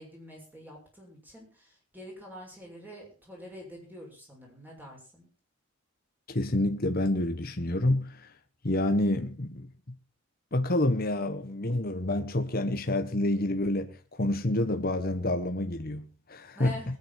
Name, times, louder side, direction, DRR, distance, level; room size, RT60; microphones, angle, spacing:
voice 1, 0.0-5.3 16.5-17.0, left 1 dB, 10° right, 6.7 m, -46 dB
voice 2, 6.3-8.3 8.6-9.7 10.5-16.7, left 1 dB, 45° left, 1.3 m, -28 dB
22.0 x 9.8 x 4.4 m
head